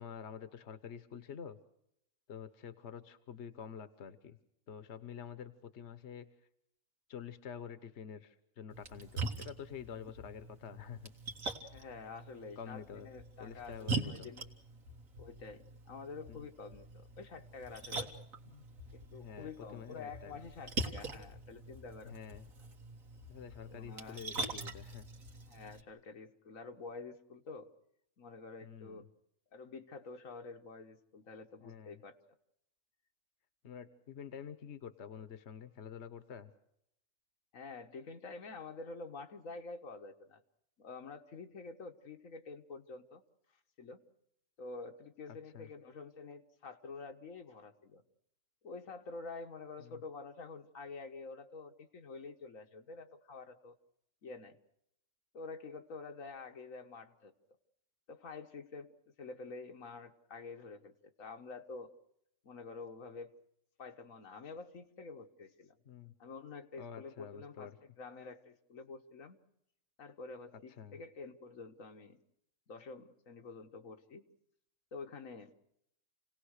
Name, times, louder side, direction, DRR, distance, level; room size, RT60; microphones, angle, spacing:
voice 1, 0.0-1.6 2.3-4.4 4.7-6.3 7.1-11.1 12.6-13.1 13.4-14.3 16.3-16.5 18.5-18.6 19.1-20.4 22.0-22.4 23.3-25.1 28.6-29.1 31.6-32.0 33.6-36.5 45.5-45.7 49.8-50.0 65.9-66.1 66.8-67.7 70.8-71.0, left 7 dB, 60° left, 11 dB, 1.3 m, -48 dB
Splash splatter, 8.7-25.8, right 2 dB, 90° right, 2.2 m, -43 dB
voice 2, 11.7-14.5 15.2-18.2 18.9-22.2 23.7-24.2 25.4-27.7 28.2-29.1 29.5-32.2 37.5-40.4 40.8-43.2 43.8-44.0 44.6-48.0 48.6-53.8 54.2-54.6 55.3-57.3 58.1-58.9 59.2-61.9 62.4-63.3 63.8-65.8 66.2-69.4 70.0-72.2 72.7-74.2 74.9-75.5, left 4 dB, 85° left, 5 dB, 1.8 m, -48 dB
29.0 x 18.0 x 6.5 m, 0.77 s
omnidirectional pair, 1.4 m